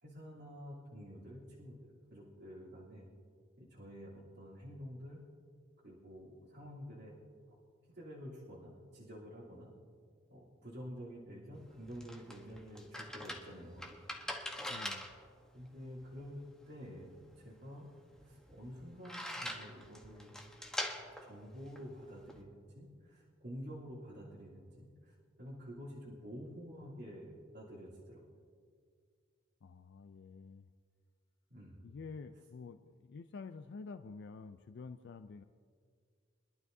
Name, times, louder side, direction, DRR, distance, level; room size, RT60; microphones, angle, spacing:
voice 1, 0.0-3.1 3.6-5.2 5.8-7.1 7.9-9.7 10.3-13.9 15.5-17.1 17.3-17.9 18.2-20.4 21.2-28.2 31.5-31.8, equal, 60° right, -9 dB, 3.1 m, -49 dB
sound 1, 11.5-22.4, equal, 5° left, 1.1 m, -45 dB
voice 2, 14.7-15.1 29.6-30.7 31.8-35.4, left 4 dB, 60° left, 10 dB, 0.4 m, -49 dB
24.5 x 12.0 x 2.7 m, 2.1 s
head